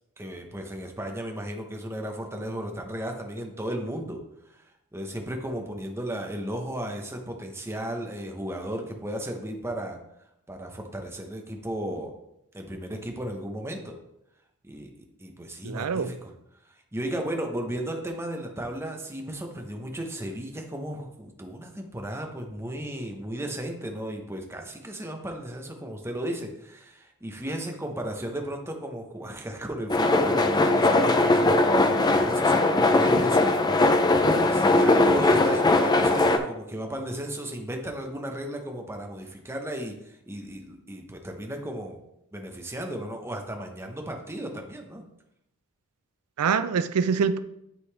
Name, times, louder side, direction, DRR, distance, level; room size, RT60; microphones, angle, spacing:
voice 1, 0.2-4.2 4.5-10.0 10.5-12.1 12.5-14.0 14.6-16.3 16.9-42.0 42.3-45.0, right 1 dB, 10° right, 0.9 m, -35 dB
voice 2, 15.6-16.1 46.4-47.4, right 6 dB, 85° right, 0.4 m, -25 dB
sound 1, 29.9-36.4, left 2 dB, 20° left, 0.5 m, -20 dB
11.0 x 3.9 x 3.3 m
head